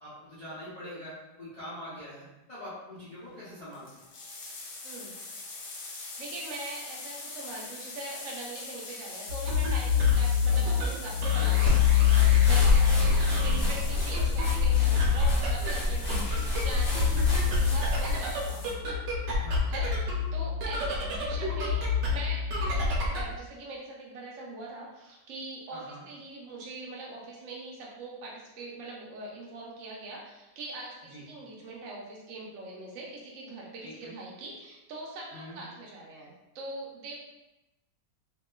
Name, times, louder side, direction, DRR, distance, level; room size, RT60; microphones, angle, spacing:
voice 1, 0.0-4.0 13.0-13.2 17.1-17.2 19.4-19.7 25.7-26.0 31.1-31.2 33.8-34.1 35.3-35.6, equal, 75° left, -11 dB, 0.3 m, -44 dB
sound 1, 3.3-3.4 3.6-18.7, left 3 dB, 90° left, 1.3 m, -43 dB
voice 2, 4.8-5.2 6.2-16.2 16.6-18.6 19.7-37.1, right 2 dB, 60° right, -3 dB, 0.9 m, -42 dB
sound 2, 9.3-23.4, left 6 dB, 85° right, 1.3 m, -26 dB
sound 3, 11.7-18.2, left 1 dB, 50° left, 0.8 m, -30 dB
2.8 x 2.3 x 2.2 m, 0.99 s
omnidirectional pair, 1.8 m